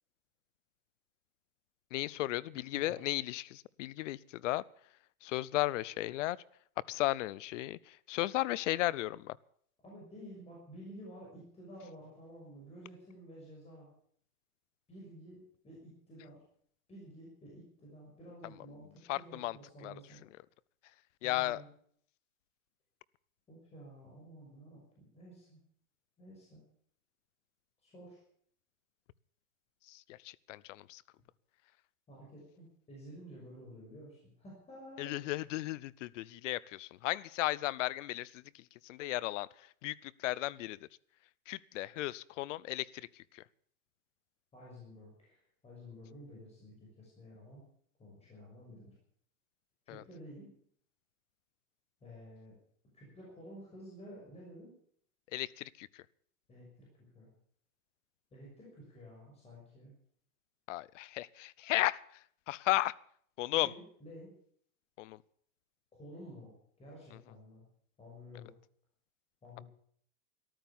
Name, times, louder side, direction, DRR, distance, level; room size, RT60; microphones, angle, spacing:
voice 1, 1.9-4.6 5.2-6.4 6.9-7.8 8.1-9.4 19.1-19.6 19.8-19.9 21.2-21.6 29.9-31.0 35.0-38.4 38.9-39.5 39.8-40.8 41.5-42.9 49.9-50.0 55.3-55.9 60.7-62.0 62.5-62.9 63.4-63.7 65.0-65.2, left 17 dB, 55° left, 0.7 m, -34 dB
voice 2, 2.7-3.1 9.8-13.9 14.9-16.4 16.9-20.2 21.2-21.7 23.5-25.6 26.2-26.6 27.8-28.2 32.1-35.2 44.5-47.6 48.0-48.9 49.9-50.5 52.0-52.5 52.9-54.7 56.5-57.3 58.3-59.9 63.5-64.3 66.0-67.6 68.0-68.5 69.4-69.6, equal, 15° left, 6.1 m, -52 dB
14.0 x 12.5 x 7.2 m
supercardioid pair, 150°, 44 cm